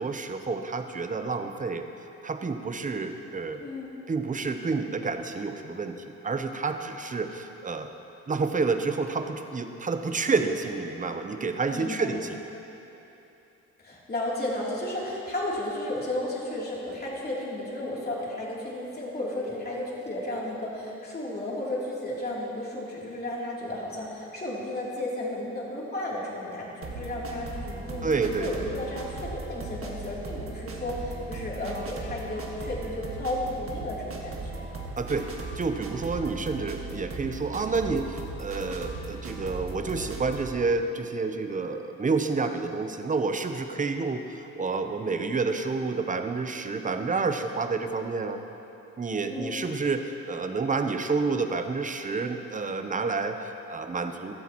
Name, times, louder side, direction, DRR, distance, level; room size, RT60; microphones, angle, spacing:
voice 1, 0.0-1.9 2.2-3.7 4.1-6.0 6.2-7.9 8.3-12.3 28.0-28.5 35.0-35.3 35.6-48.4 49.0-54.3, right 4 dB, 25° right, 7 dB, 0.8 m, -29 dB
voice 2, 3.6-3.9 11.7-12.2 13.8-28.1 28.4-34.6 49.3-49.7, left 1 dB, 30° left, -5 dB, 3.2 m, -33 dB
sound 1, 26.8-40.5, right 3 dB, 45° right, 1.8 m, -38 dB
16.0 x 12.5 x 3.1 m, 3.0 s
cardioid pair, 90°, 30 cm